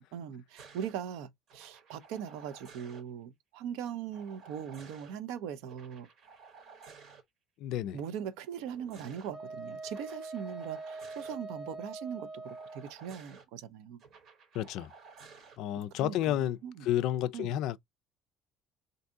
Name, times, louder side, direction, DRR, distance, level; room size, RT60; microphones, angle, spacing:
voice 1, 0.0-6.1 7.9-14.0 16.0-16.4 16.6-16.9 17.3-17.5, right 8 dB, 75° right, 0.5 m, -40 dB
sound 1, 0.6-0.9 1.5-3.0 4.1-5.1 5.7-7.2 8.5-9.3 9.8-11.4 12.4-13.4 14.0-15.6 16.9-17.2, right 5 dB, 45° right, 1.0 m, -54 dB
voice 2, 7.6-8.0 14.5-14.9 15.6-17.8, left 12 dB, 60° left, 0.3 m, -31 dB
Wind instrument woodwind instrument, 9.3-12.9, right 3 dB, ahead, 0.8 m, -43 dB
3.6 x 2.6 x 2.5 m
cardioid pair, 165°, 0 cm